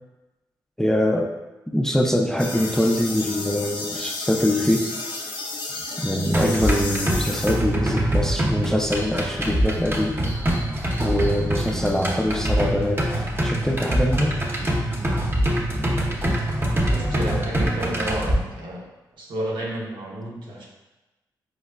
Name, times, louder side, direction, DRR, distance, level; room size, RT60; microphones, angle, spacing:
voice 1, 0.8-1.3 1.7-4.9 6.0-10.2 10.5-10.6 11.0-14.4, left 1 dB, 5° left, 1 dB, 0.4 m, -23 dB
sound 1, 2.4-7.5, left 3 dB, 80° left, 0.5 m, -32 dB
sound 2, 6.3-18.3, right 1 dB, 25° right, 0.8 m, -24 dB
voice 2, 16.9-18.8 19.2-20.7, right 1 dB, 75° right, -3 dB, 0.8 m, -31 dB
4.5 x 2.0 x 2.2 m, 1.1 s
supercardioid pair, 50°, 8 cm